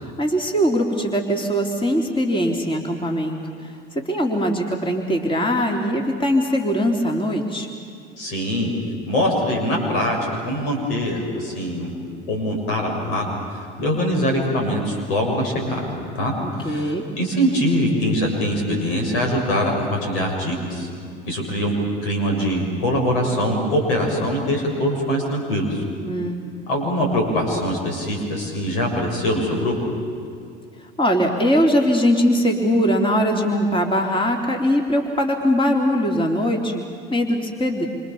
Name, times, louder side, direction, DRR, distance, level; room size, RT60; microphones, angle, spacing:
voice 1, 0.2-7.7 16.4-17.1 26.0-26.7 30.8-37.9, equal, 15° left, 2 dB, 3.5 m, -21 dB
voice 2, 8.2-8.7 9.1-10.2 10.5-11.9 12.3-13.3 13.8-15.9 16.1-20.9 21.3-21.7 22.0-25.8 26.7-29.8, equal, 75° left, 1 dB, 7.2 m, -23 dB
27.5 x 26.5 x 7.2 m, 2.5 s
hypercardioid pair, 75°, 29 cm